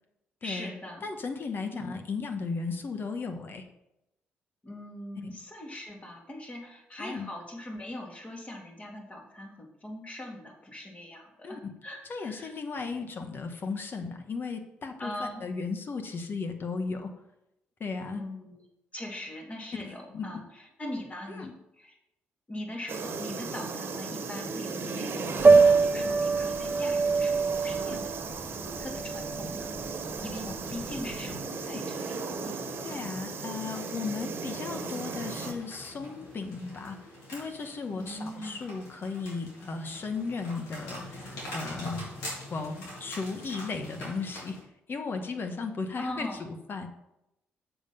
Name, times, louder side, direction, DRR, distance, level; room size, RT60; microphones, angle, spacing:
voice 1, 0.4-1.0 1.7-1.9 4.6-12.5 15.0-15.4 18.1-18.6 18.9-20.4 20.8-21.5 21.8-22.0 22.5-28.1 28.6-29.7 30.2-32.2 38.0-38.5 46.0-46.4, left 1 dB, 30° left, 0 dB, 2.9 m, -41 dB
voice 2, 1.0-3.6 7.0-7.3 11.4-11.7 12.1-17.1 17.8-18.2 19.8-20.4 21.3-21.5 27.8-28.0 31.6-31.8 32.8-37.0 37.3-44.6 44.9-46.9, left 4 dB, 50° left, 6 dB, 1.5 m, -36 dB
sound 1, 22.9-35.5, right 4 dB, 55° right, 1.4 m, -36 dB
Piano, 25.4-31.3, right 4 dB, 35° right, 0.7 m, -24 dB
sound 2, 30.6-44.6, left 1 dB, 85° left, 3.3 m, -44 dB
7.2 x 7.1 x 5.7 m, 0.87 s
supercardioid pair, 55°, 5 cm